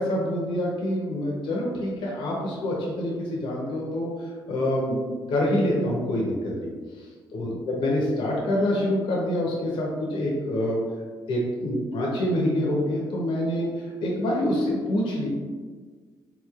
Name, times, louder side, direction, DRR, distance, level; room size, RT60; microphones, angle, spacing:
voice 1, 0.0-6.7 7.3-10.8 11.3-15.3, left 1 dB, 75° left, -3 dB, 0.8 m, -26 dB
3.7 x 3.0 x 2.4 m, 1.5 s
cardioid pair, 105°, 9 cm